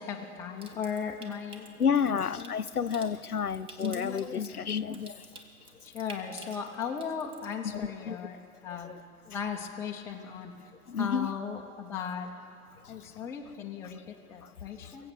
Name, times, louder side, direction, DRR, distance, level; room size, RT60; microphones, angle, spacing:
voice 1, 0.0-1.7 2.0-2.5 4.1-4.6 5.8-8.9 9.3-10.5 11.0-12.3 12.9-15.1, left 7 dB, 5° left, 0 dB, 0.5 m, -37 dB
Water tap faucet / Sink (filling or washing) / Trickle dribble, 0.6-7.5, right 2 dB, 10° right, 0.9 m, -51 dB
voice 2, 1.8-5.2 7.7-8.2 8.8-9.0 10.9-11.3 12.8-12.9 14.8-15.1, left 7 dB, 90° left, 14 dB, 0.6 m, -30 dB
23.0 x 7.7 x 6.7 m, 2.4 s
figure-of-eight pair, 105°, 43 cm